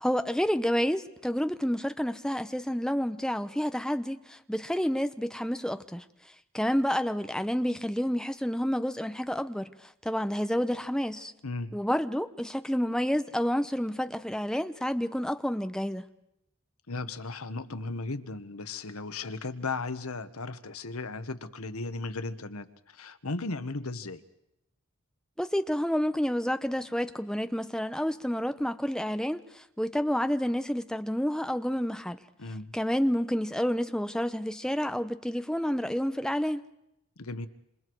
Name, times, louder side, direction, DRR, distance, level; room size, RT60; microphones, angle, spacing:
voice 1, 0.0-6.0 6.5-9.7 10.0-11.3 11.7-16.1 25.4-32.2 32.7-36.6, equal, 5° left, 0.8 m, -29 dB
voice 2, 11.4-11.7 16.9-24.2 32.4-32.7 37.2-37.5, left 3 dB, 85° left, 1.3 m, -36 dB
28.0 x 27.0 x 4.7 m
head